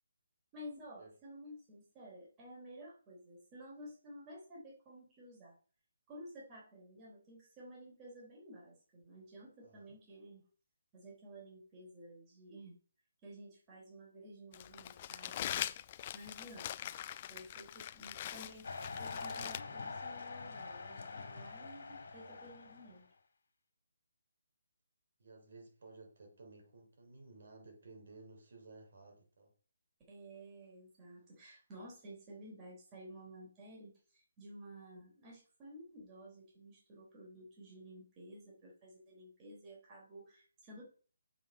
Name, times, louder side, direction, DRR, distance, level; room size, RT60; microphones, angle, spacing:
voice 1, 0.5-5.5 6.1-10.4 10.9-12.8 13.2-15.5 16.1-16.9 17.3-23.1 30.1-40.8, equal, 20° right, -3 dB, 3.6 m, -53 dB
Crumpling crinkling, 14.5-19.6, left 11 dB, 30° left, 0.4 m, -42 dB
sound 1, 18.6-23.0, left 4 dB, 65° left, 2.1 m, -45 dB
voice 2, 25.2-29.5, right 3 dB, 60° right, 2 dB, 3.3 m, -56 dB
7.2 x 5.5 x 5.4 m, 0.41 s
hypercardioid pair, 160°, 0 cm